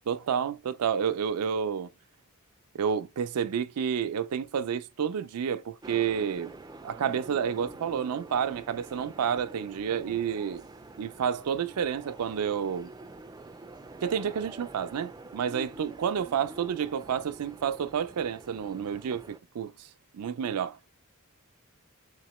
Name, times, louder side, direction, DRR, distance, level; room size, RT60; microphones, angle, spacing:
voice 1, 0.1-1.9 2.7-6.5 6.8-10.6 11.0-12.9 14.0-19.9 20.1-20.9, right 7 dB, 85° right, 0.4 m, -30 dB
sound 1, 5.8-19.4, right 2 dB, 15° right, 0.3 m, -46 dB
3.8 x 3.5 x 3.0 m
head